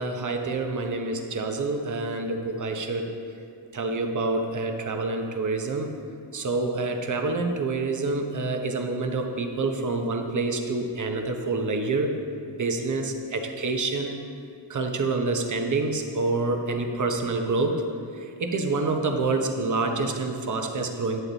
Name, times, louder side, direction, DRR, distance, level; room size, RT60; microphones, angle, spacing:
voice 1, 0.0-3.1 3.7-5.9 6.3-12.1 12.5-14.1 14.7-17.8 18.1-21.2, right 3 dB, 45° right, 4 dB, 1.0 m, -27 dB
10.5 x 8.9 x 4.0 m, 2.4 s
wide cardioid pair, 130°, 44 cm